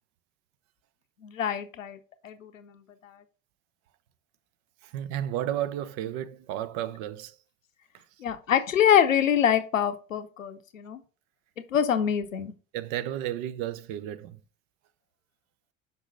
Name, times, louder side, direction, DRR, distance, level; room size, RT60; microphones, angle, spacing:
voice 1, 1.2-3.2 8.2-11.0 11.7-12.5, left 9 dB, 85° left, 0.7 m, -25 dB
voice 2, 4.8-7.4 7.9-8.0 12.7-14.4, right 12 dB, 55° right, 0.7 m, -33 dB
6.0 x 5.3 x 3.8 m
figure-of-eight pair, 60°, 38 cm